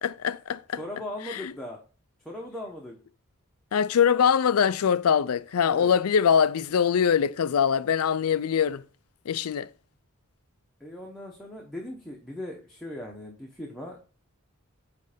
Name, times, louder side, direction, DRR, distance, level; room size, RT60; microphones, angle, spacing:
voice 1, 0.0-0.8 1.3-1.5 3.7-8.8 9.3-9.7, left 7 dB, 80° left, 0.4 m, -23 dB
voice 2, 0.8-1.8 2.2-3.0 5.7-5.9 10.8-14.0, left 1 dB, ahead, 1.0 m, -38 dB
9.2 x 3.3 x 5.0 m
head